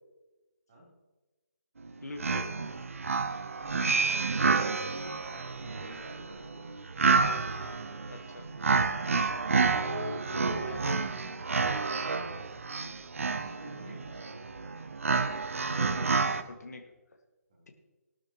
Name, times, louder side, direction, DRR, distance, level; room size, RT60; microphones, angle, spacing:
sound 1, 1.8-1.9 2.2-16.4, right 4 dB, 55° right, 0.8 m, -29 dB
voice 1, 2.0-2.5 8.1-8.5 9.6-11.1 15.7-16.9, left 3 dB, 70° left, 4 dB, 1.9 m, -42 dB
voice 2, 3.6-6.8 7.0-8.2 11.7-12.6 13.2-14.6 17.5-17.7, right 1 dB, 25° right, -5 dB, 3.7 m, -50 dB
19.0 x 12.5 x 3.1 m, 1.2 s
hypercardioid pair, 180°, 9 cm